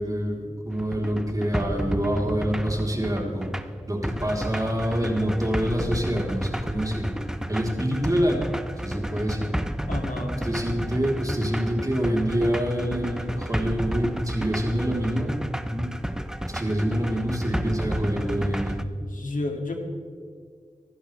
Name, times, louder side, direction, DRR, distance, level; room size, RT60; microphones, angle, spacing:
voice 1, 0.0-3.5 3.9-7.2 7.5-8.4 8.8-9.5 10.4-15.3 15.6-15.9 16.5-18.8, equal, 25° right, -1 dB, 4.0 m, -26 dB
sound 1, 0.7-18.8, right 1 dB, 5° right, 0.9 m, -32 dB
voice 2, 9.9-10.5 19.0-19.7, left 2 dB, 85° left, 2 dB, 2.6 m, -31 dB
25.5 x 11.5 x 3.5 m, 2.1 s
wide cardioid pair, 70°, 13 cm